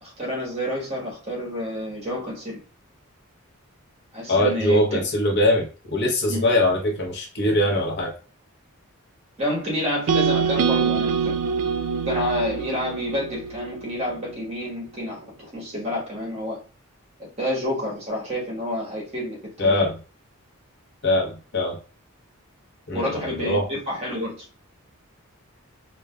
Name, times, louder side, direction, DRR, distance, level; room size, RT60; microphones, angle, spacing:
voice 1, 0.0-2.6 4.1-5.1 6.3-6.5 9.4-11.4 12.0-16.6 17.2-19.9 22.9-24.5, left 1 dB, 30° right, -3 dB, 1.2 m, -29 dB
voice 2, 4.3-8.1 19.6-19.9 21.0-21.8 22.9-23.6, left 1 dB, 50° left, 0 dB, 0.8 m, -22 dB
sound 1, 10.1-14.2, right 6 dB, 90° right, 0.3 m, -24 dB
4.7 x 2.2 x 2.2 m, 0.35 s
head